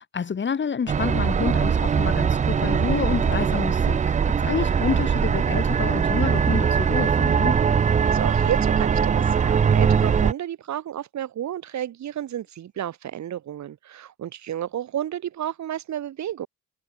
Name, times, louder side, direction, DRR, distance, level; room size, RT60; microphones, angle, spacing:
voice 1, 0.1-7.6, left 6 dB, 35° left, 2.5 m, -28 dB
sound 1, 0.9-10.3, right 7 dB, 25° right, 0.4 m, -21 dB
voice 2, 8.0-16.5, right 11 dB, 60° right, 1.8 m, -31 dB
cardioid pair, 130°, 31 cm